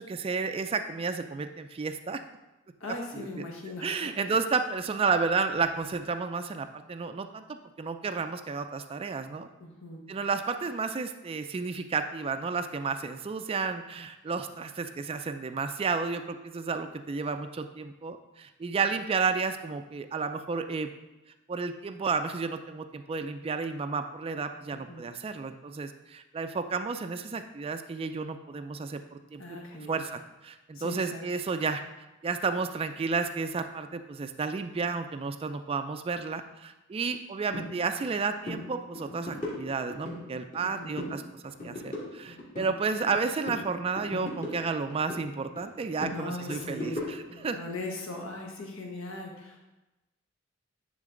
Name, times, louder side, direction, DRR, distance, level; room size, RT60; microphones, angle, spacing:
voice 1, 0.0-2.2 3.1-3.5 3.8-9.5 10.1-20.9 21.5-29.6 29.9-31.8 32.2-47.6, right 4 dB, 25° right, 7 dB, 0.3 m, -32 dB
voice 2, 2.8-4.4 9.6-10.0 24.9-25.0 29.4-30.0 30.7-31.2 40.6-40.9 46.1-47.0 47.5-49.6, left 2 dB, 70° left, 0 dB, 1.3 m, -39 dB
sound 1, 37.5-37.7 38.0-38.2 38.4-38.6 38.9-40.2 40.5-41.2 41.4-43.2 43.5-45.2 45.6-47.4, left 1 dB, 40° left, 2.1 m, -37 dB
9.7 x 3.9 x 3.8 m, 1.0 s
head